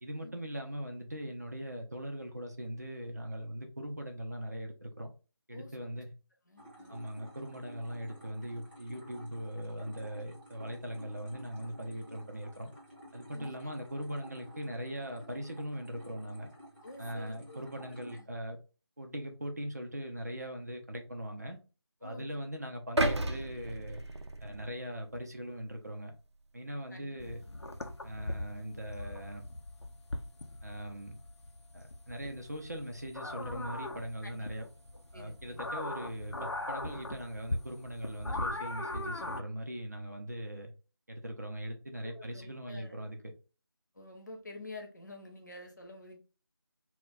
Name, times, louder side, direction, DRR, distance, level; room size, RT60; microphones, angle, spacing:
voice 1, 0.0-5.1 5.5-6.1 6.9-12.7 13.1-16.5 17.0-18.6 19.0-21.6 22.0-24.0 24.4-26.1 26.5-27.4 28.0-29.4 30.6-31.2 31.7-34.7 35.1-40.7 41.1-43.3, equal, 40° right, 3 dB, 0.5 m, -40 dB
voice 2, 5.5-5.9 6.5-7.0 13.3-13.5 16.8-17.6 18.1-18.2 22.0-22.5 26.9-27.2 34.2-34.4 35.1-35.7 42.0-43.0 43.9-46.2, left 2 dB, 45° left, 2 dB, 0.7 m, -48 dB
sound 1, 6.6-18.2, equal, 20° right, 0.9 m, -53 dB
sound 2, 23.0-25.1 25.6-25.7, right 1 dB, 85° right, 0.5 m, -33 dB
sound 3, 27.2-39.4, left 2 dB, 90° left, 0.5 m, -40 dB
2.2 x 2.1 x 3.6 m, 0.33 s
figure-of-eight pair, 170°, 14 cm